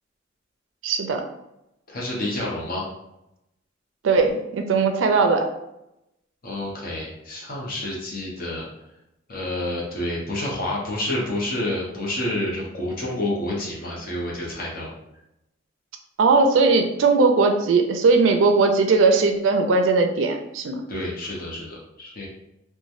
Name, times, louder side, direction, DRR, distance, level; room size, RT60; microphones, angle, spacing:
voice 1, 0.8-1.2 4.0-5.5 16.2-20.8, right 4 dB, 80° right, 5 dB, 0.4 m, -19 dB
voice 2, 1.9-2.8 6.4-8.6 9.3-14.9 20.9-22.3, left 1 dB, 50° left, -4 dB, 0.8 m, -29 dB
3.1 x 2.2 x 2.6 m, 0.87 s
head